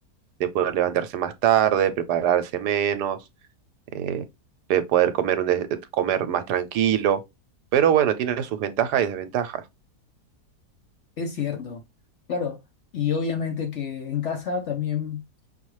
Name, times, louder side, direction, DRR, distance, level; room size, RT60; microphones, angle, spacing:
voice 1, 0.4-3.2 3.9-4.2 4.7-7.2 7.7-9.6, right 10 dB, 80° right, 1.2 m, -23 dB
voice 2, 11.2-11.8 12.3-12.6 12.9-15.2, left 6 dB, 55° left, 0.9 m, -28 dB
5.4 x 2.3 x 3.1 m
omnidirectional pair, 1.8 m